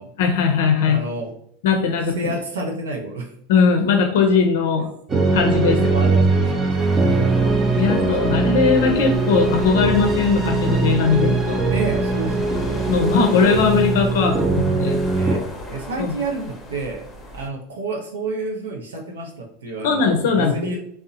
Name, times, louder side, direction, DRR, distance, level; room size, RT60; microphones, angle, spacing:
voice 1, 0.2-1.0 1.6-2.2 3.5-4.9 5.3-5.7 7.8-11.6 12.9-15.0 16.0-16.1 19.8-20.7, left 5 dB, 70° left, 4 dB, 0.5 m, -19 dB
voice 2, 0.8-1.3 2.1-3.3 5.5-7.3 7.8-8.5 11.7-12.9 15.1-17.1 17.3-20.8, right 2 dB, 85° right, 1 dB, 0.5 m, -30 dB
sound 1, 5.1-15.4, right 3 dB, 25° right, 0.6 m, -20 dB
sound 2, 6.8-17.5, left 2 dB, 25° left, 0.6 m, -37 dB
2.7 x 2.0 x 2.6 m, 0.69 s
hypercardioid pair, 90°, 0 cm